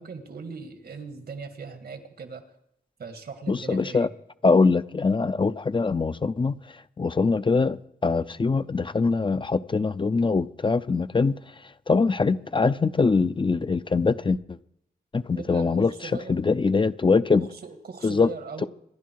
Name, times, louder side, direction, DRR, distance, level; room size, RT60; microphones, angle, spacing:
voice 1, 0.0-2.4 3.0-4.1 15.3-16.4 17.3-18.7, right 5 dB, 75° right, 2.1 m, -39 dB
voice 2, 3.5-4.1 4.4-6.5 7.0-7.8 8.0-11.4 11.9-14.6 15.1-17.5 18.0-18.3, left 4 dB, 30° left, 0.6 m, -23 dB
26.0 x 11.0 x 4.7 m
wide cardioid pair, 105°, 16 cm